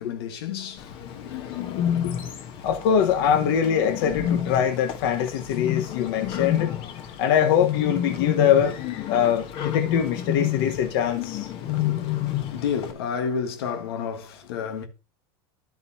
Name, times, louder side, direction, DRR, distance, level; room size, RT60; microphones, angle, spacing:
voice 1, 0.0-2.2 11.6-14.9, left 7 dB, 85° left, 1.5 m, -32 dB
Bird, 0.8-12.9, left 11 dB, 45° left, 1.4 m, -29 dB
voice 2, 2.6-6.7 7.2-8.8 9.1-11.5, left 8 dB, 70° left, 1.4 m, -23 dB
10.5 x 7.9 x 2.9 m
supercardioid pair, 145°, 13 cm